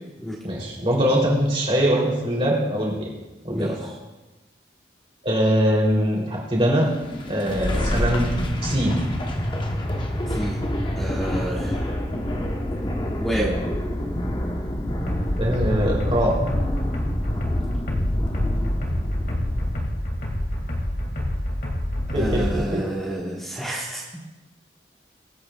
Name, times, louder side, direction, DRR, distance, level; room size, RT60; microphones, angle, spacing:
voice 1, 0.4-3.1 3.4-3.9 5.2-6.9 7.3-8.3 8.6-9.0 15.4-16.4 22.1-22.8, equal, 30° right, -3 dB, 3.0 m, -22 dB
sound 1, 6.9-20.0, left 1 dB, 25° left, 0.9 m, -27 dB
voice 2, 10.3-10.6 11.0-11.9 13.2-13.5 22.1-24.0, right 1 dB, ahead, -6 dB, 1.3 m, -29 dB
sound 2, 15.1-22.6, left 1 dB, 50° left, 2.1 m, -27 dB
22.5 x 8.7 x 2.3 m, 1.1 s
head